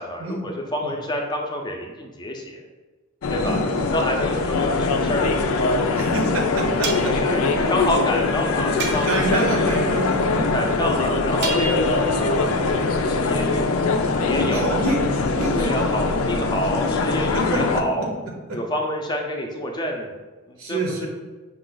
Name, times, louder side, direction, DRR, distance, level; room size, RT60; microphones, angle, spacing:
voice 1, 0.0-2.6 3.3-3.6 3.9-5.7 7.0-9.7 10.5-13.7 14.2-14.8 15.6-18.1 18.5-20.1 20.5-21.1, equal, 20° left, 1 dB, 0.5 m, -28 dB
sound 1, 3.2-17.8, left 3 dB, 90° left, 0.4 m, -22 dB
voice 2, 3.4-3.9 4.2-4.3 6.0-7.1 9.0-10.6 14.5-15.0 15.3-15.8 17.5-17.6 18.0-18.1 20.6-21.1, right 2 dB, 75° right, 1 dB, 0.9 m, -26 dB
sound 2, 5.0-5.1 6.8-7.2 8.8-9.4 11.4-12.3, right 4 dB, 55° right, 0.5 m, -31 dB
5.5 x 2.5 x 3.8 m, 1.3 s
head